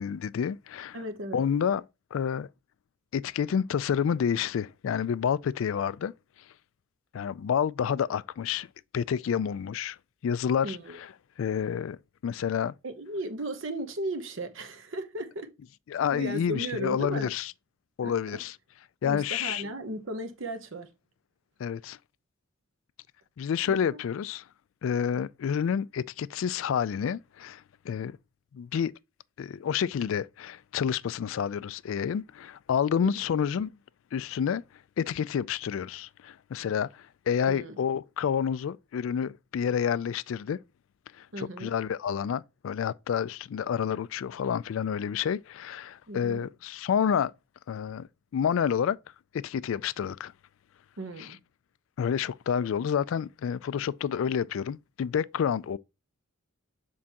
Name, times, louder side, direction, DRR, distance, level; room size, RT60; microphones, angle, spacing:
voice 1, 0.0-1.0 1.3-1.8 2.1-2.5 3.1-6.1 7.1-8.7 8.9-10.0 10.2-11.1 11.4-12.0 12.2-12.7 15.9-17.5 18.0-18.5 19.0-19.6 21.6-22.0 23.4-24.4 24.8-28.2 28.5-28.9 29.4-33.7 34.1-34.6 35.0-40.6 41.2-47.3 47.7-48.1 48.3-49.0 49.3-50.3 51.2-51.3 52.0-55.8, left 7 dB, 70° left, 0.3 m, -29 dB
voice 2, 0.9-1.4 10.6-11.0 12.8-15.5 16.1-17.3 18.0-18.4 19.0-20.9 23.7-24.0 33.0-33.1 37.5-37.8 41.3-41.7 46.1-46.5 51.0-51.4, right 1 dB, 60° right, 0.9 m, -36 dB
7.4 x 4.6 x 2.9 m
head